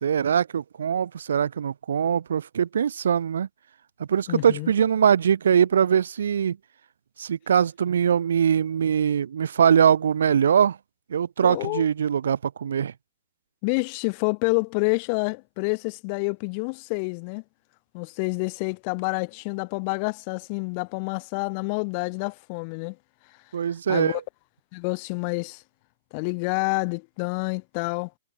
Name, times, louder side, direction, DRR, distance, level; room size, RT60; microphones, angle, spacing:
voice 1, 0.0-3.5 4.0-6.6 7.2-10.8 11.1-12.9 23.5-24.2, right 8 dB, 80° right, 2.3 m, -22 dB
voice 2, 4.3-4.7 11.4-11.9 13.6-17.4 17.9-23.0 23.9-24.2 24.7-25.6 26.1-28.1, left 34 dB, 30° left, 2.7 m, -28 dB
hypercardioid pair, 165°, 0 cm